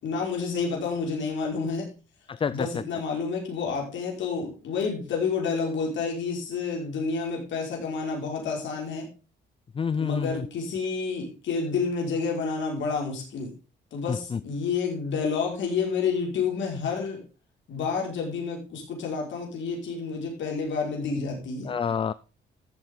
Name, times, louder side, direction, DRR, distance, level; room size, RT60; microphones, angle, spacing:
voice 1, 0.0-1.9 2.5-9.1 10.0-13.5 13.9-17.2 17.7-21.8, left 5 dB, 70° left, -1 dB, 5.3 m, -29 dB
voice 2, 2.3-2.7 9.8-10.5 14.1-14.4 21.6-22.1, left 6 dB, 25° left, 17 dB, 0.4 m, -28 dB
14.0 x 7.9 x 3.8 m, 0.33 s
cardioid pair, 90°, 20 cm